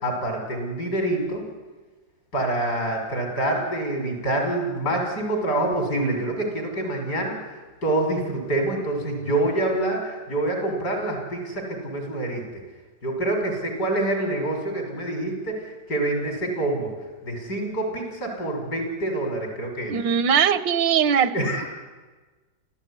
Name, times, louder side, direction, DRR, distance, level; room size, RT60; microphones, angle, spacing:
voice 1, 0.0-1.5 2.3-12.4 13.0-16.9 17.2-19.9 21.3-21.7, right 1 dB, 60° left, 3 dB, 6.4 m, -26 dB
voice 2, 19.9-21.3, right 7 dB, 85° right, 15 dB, 1.7 m, -20 dB
29.0 x 13.5 x 9.9 m, 1.3 s
omnidirectional pair, 1.9 m